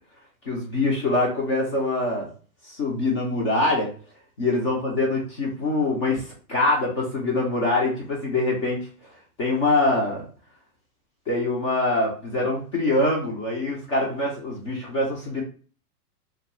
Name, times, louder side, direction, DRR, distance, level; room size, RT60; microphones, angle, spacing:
voice 1, 0.4-2.3 2.6-3.9 4.4-8.9 9.4-10.3 11.3-15.4, left 2 dB, 20° left, -2 dB, 0.4 m, -24 dB
2.3 x 2.3 x 2.9 m, 0.39 s
hypercardioid pair, 125°, 47 cm